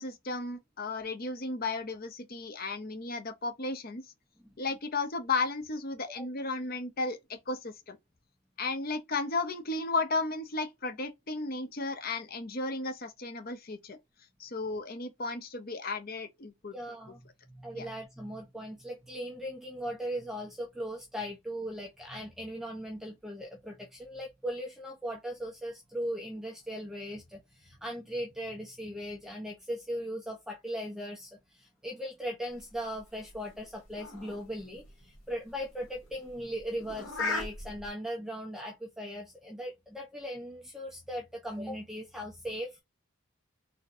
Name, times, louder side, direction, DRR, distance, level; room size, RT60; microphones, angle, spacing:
voice 1, 0.0-4.0 4.6-8.0 8.6-14.0 14.4-16.7 17.7-17.9, left 3 dB, 45° left, 0.8 m, -34 dB
voice 2, 16.7-17.2 17.5-42.8, equal, ahead, 0.8 m, -38 dB
sound 1, 32.6-37.9, left 3 dB, 60° left, 1.8 m, -39 dB
4.2 x 3.8 x 2.6 m
head